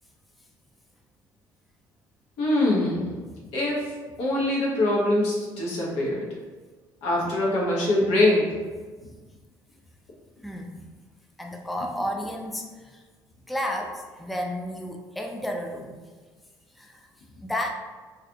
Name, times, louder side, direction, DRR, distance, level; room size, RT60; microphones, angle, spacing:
voice 1, 2.4-3.1 3.5-3.8 4.2-6.3 7.0-8.4, left 1 dB, 75° left, -3 dB, 0.8 m, -23 dB
voice 2, 10.4-10.7 11.4-13.0 13.5-16.0 16.8-17.1 17.4-17.7, equal, ahead, 1 dB, 0.3 m, -32 dB
2.4 x 2.4 x 2.7 m, 1.4 s
hypercardioid pair, 60°, 10 cm